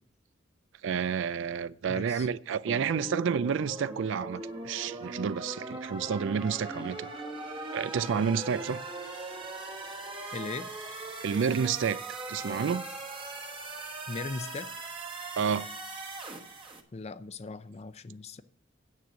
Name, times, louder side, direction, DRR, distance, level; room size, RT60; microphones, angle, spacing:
voice 1, 0.8-7.1 7.7-8.8 11.2-12.0 12.3-12.8 15.4-15.7, right 6 dB, 65° right, 0.4 m, -30 dB
voice 2, 1.9-2.3 10.3-10.7 14.1-14.7 16.9-18.4, left 3 dB, 35° left, 0.5 m, -38 dB
sound 1, 2.7-16.8, right 2 dB, 25° right, 1.2 m, -40 dB
9.6 x 7.6 x 6.2 m
head